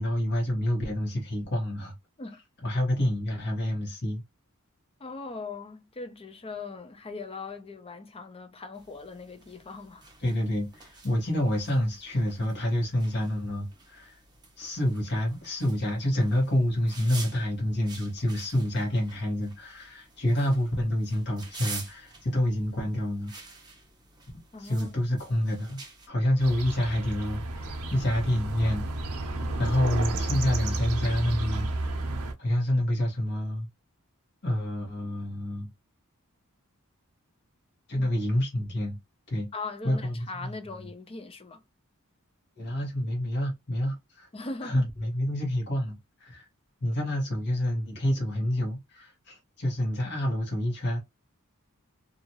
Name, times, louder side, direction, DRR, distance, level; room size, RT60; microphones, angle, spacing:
voice 1, 0.0-1.9 2.6-4.2 10.2-14.2 14.6-23.3 24.6-28.9 29.6-31.7 32.4-33.7 34.4-35.7 37.9-39.0 39.3-39.5 39.8-40.9 42.6-44.3 44.6-46.5 46.8-51.0, left 1 dB, 50° left, 1.1 m, -28 dB
voice 2, 5.0-10.0 24.5-24.9 38.0-38.1 39.5-41.6 44.3-44.8, left 3 dB, 25° left, 0.5 m, -40 dB
sound 1, 8.7-26.1, right 4 dB, 20° right, 0.8 m, -48 dB
sound 2, 26.4-32.3, right 2 dB, 90° right, 0.6 m, -32 dB
2.7 x 2.4 x 2.8 m
head